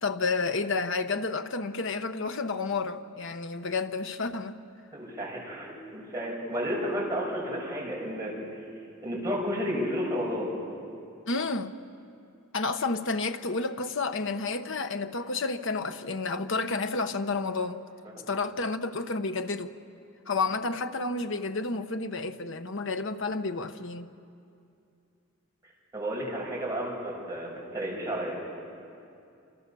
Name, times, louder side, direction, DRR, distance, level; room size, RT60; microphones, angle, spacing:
voice 1, 0.0-4.6 11.3-11.7 12.5-17.8 18.3-19.7 20.3-24.1, left 3 dB, 60° left, 8 dB, 1.1 m, -30 dB
voice 2, 4.9-8.3 9.0-10.5 25.9-28.4, equal, 15° right, -4 dB, 6.8 m, -32 dB
28.5 x 27.0 x 7.0 m, 2.6 s
head